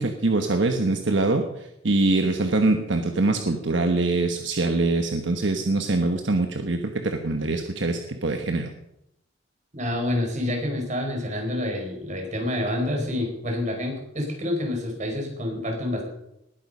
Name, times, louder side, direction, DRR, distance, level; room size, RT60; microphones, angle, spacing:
voice 1, 0.0-8.7, right 2 dB, 70° right, 5 dB, 1.2 m, -24 dB
voice 2, 9.7-16.0, left 1 dB, 40° right, 1 dB, 4.7 m, -28 dB
20.0 x 9.3 x 5.4 m, 0.82 s
head